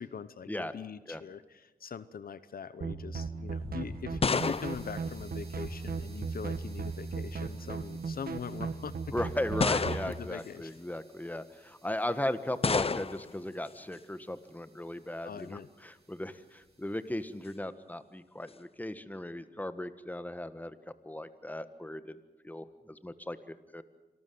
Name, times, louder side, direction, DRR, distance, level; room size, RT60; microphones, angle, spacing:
voice 1, 0.0-8.9 10.0-10.7 15.2-15.7, left 6 dB, 70° left, 15 dB, 0.8 m, -42 dB
sound 1, 2.8-10.1, right 4 dB, 75° right, 1.5 m, -37 dB
sound 2, 3.6-6.0 7.0-7.4 8.3-8.4 9.6-10.4 12.6-13.4, left 4 dB, 40° left, 0.6 m, -31 dB
sound 3, 4.2-17.6, right 4 dB, 45° right, 8.0 m, -61 dB
voice 2, 9.1-20.8 21.0-22.2 22.4-23.8, left 1 dB, 10° left, 12 dB, 1.4 m, -37 dB
26.5 x 13.0 x 9.5 m, 1.1 s
cardioid pair, 65°, 15 cm